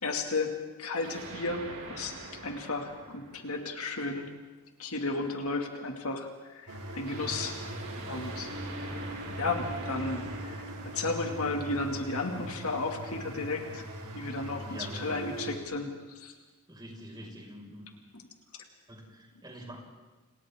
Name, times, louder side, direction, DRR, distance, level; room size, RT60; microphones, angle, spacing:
voice 1, 0.0-2.1 2.4-4.3 4.8-7.6 8.0-8.5 8.7-9.1 9.4-13.8 14.1-16.3, left 3 dB, 70° left, 3 dB, 2.4 m, -34 dB
sound 1, 1.0-4.1 7.0-12.2, right 2 dB, 60° right, 5.6 m, -45 dB
sound 2, 6.7-15.6, right 1 dB, 80° right, 3.2 m, -40 dB
voice 2, 14.5-15.2 16.7-17.9 18.9-19.8, right 1 dB, 20° right, -1 dB, 5.6 m, -45 dB
29.5 x 28.5 x 3.7 m, 1.3 s
head